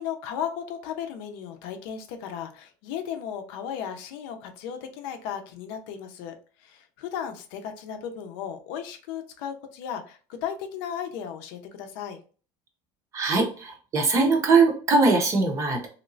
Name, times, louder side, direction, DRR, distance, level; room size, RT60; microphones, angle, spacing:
voice 1, 0.0-6.3 6.6-12.2, left 8 dB, 80° left, 6 dB, 0.6 m, -35 dB
voice 2, 13.1-15.9, right 3 dB, 25° right, 2 dB, 0.6 m, -21 dB
3.1 x 2.9 x 2.6 m, 0.39 s
cardioid pair, 180°, 12 cm